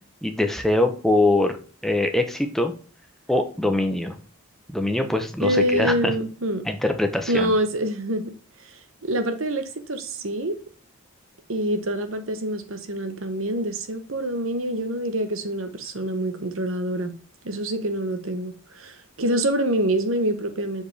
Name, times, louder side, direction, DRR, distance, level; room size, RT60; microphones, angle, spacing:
voice 1, 0.2-2.7 3.3-4.2 4.7-6.1 6.7-7.5, left 2 dB, ahead, 0.8 m, -23 dB
voice 2, 5.4-6.7 7.3-8.3 8.7-10.6 11.5-17.1 17.4-20.8, right 1 dB, 65° right, 1.1 m, -26 dB
7.1 x 5.0 x 3.4 m
head